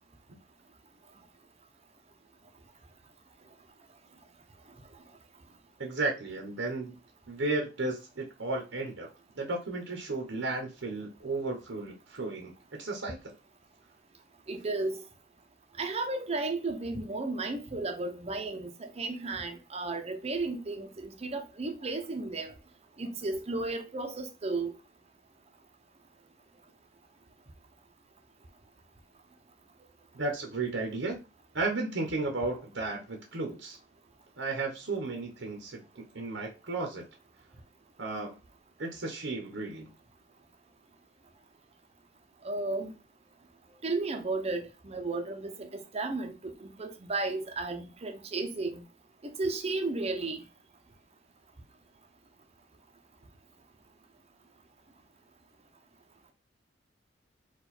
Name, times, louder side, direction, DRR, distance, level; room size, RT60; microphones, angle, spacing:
voice 1, 5.8-7.0 7.3-9.1 9.4-13.3 30.1-31.2 31.5-33.8 34.4-37.0 38.0-38.4 38.8-39.9, right 3 dB, 85° right, 1.0 m, -34 dB
voice 2, 14.5-15.0 15.8-22.5 23.0-24.7 42.4-42.9 43.8-46.3 46.6-48.8 49.4-50.4, right 3 dB, 35° right, 0.7 m, -33 dB
4.5 x 2.5 x 4.2 m
head